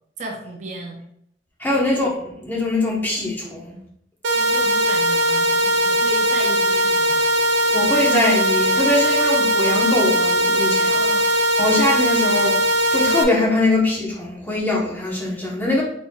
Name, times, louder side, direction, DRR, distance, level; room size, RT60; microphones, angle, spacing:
voice 1, 0.2-1.0 1.7-1.8 4.3-7.2 10.9-11.2, right 2 dB, 40° right, 1 dB, 0.5 m, -34 dB
voice 2, 1.6-3.8 7.7-10.9 11.6-12.6 12.9-15.8, left 2 dB, 10° left, -4 dB, 0.9 m, -22 dB
sound 1, 4.2-13.2, right 1 dB, 80° right, 0.6 m, -19 dB
4.2 x 4.1 x 2.3 m, 0.70 s
head